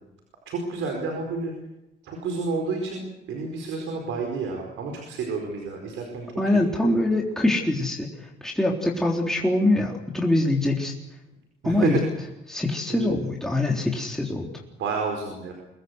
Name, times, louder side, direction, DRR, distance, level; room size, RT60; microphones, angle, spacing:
voice 1, 0.5-1.5 2.0-6.3 6.5-7.0 11.6-12.0 12.9-13.1 14.8-15.5, right 3 dB, 85° right, 3 dB, 4.8 m, -30 dB
voice 2, 6.4-8.1 8.4-10.9 11.6-12.0 12.5-14.5, left 1 dB, 5° left, -1 dB, 3.7 m, -23 dB
25.0 x 20.5 x 8.1 m, 0.96 s
cardioid pair, 90°, 20 cm